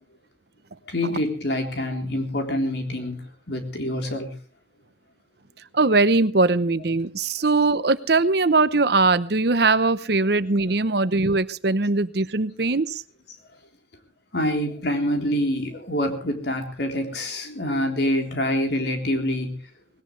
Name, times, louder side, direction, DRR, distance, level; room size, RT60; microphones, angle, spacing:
voice 1, 0.9-3.2 3.5-4.3 14.3-19.5, left 1 dB, 60° left, 4 dB, 3.6 m, -26 dB
voice 2, 5.7-13.0, right 3 dB, 60° right, 15 dB, 0.8 m, -21 dB
20.0 x 17.5 x 3.3 m, 0.40 s
head